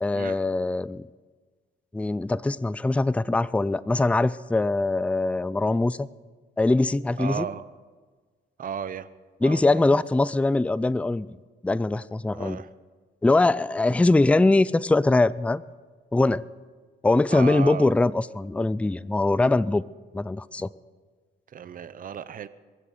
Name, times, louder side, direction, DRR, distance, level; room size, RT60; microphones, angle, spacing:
voice 1, 0.0-1.0 1.9-6.1 6.6-7.5 9.4-11.3 11.6-12.6 13.2-15.6 16.1-16.4 17.0-19.8 20.1-20.7, left 2 dB, 5° left, 18 dB, 0.4 m, -22 dB
voice 2, 7.2-7.6 8.6-9.1 9.4-10.0 12.3-12.7 17.3-17.9 21.5-22.5, right 8 dB, 45° right, 13 dB, 0.8 m, -34 dB
22.5 x 7.9 x 6.7 m, 1.4 s
cardioid pair, 90°, 20 cm